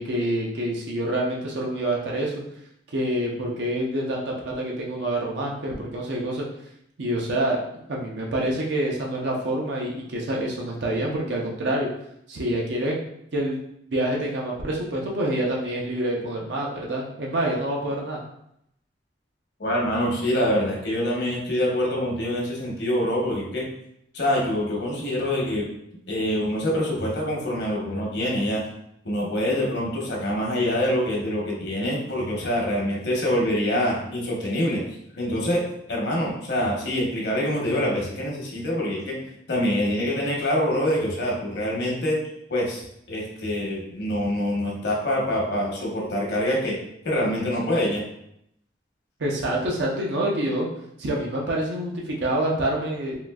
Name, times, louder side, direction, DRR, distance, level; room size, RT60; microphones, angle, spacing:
voice 1, 0.0-2.3 2.9-6.4 7.0-7.6 7.9-11.9 12.3-13.0 13.3-13.6 13.9-18.2 49.2-50.7 51.0-53.2, right 1 dB, 80° right, -2 dB, 0.6 m, -27 dB
voice 2, 19.6-23.7 24.1-25.6 26.1-28.6 29.0-34.9 35.2-35.6 35.9-39.2 39.5-42.2 42.5-46.8 47.0-48.0, left 1 dB, 70° left, -2 dB, 0.9 m, -25 dB
3.7 x 2.5 x 2.3 m, 0.76 s
head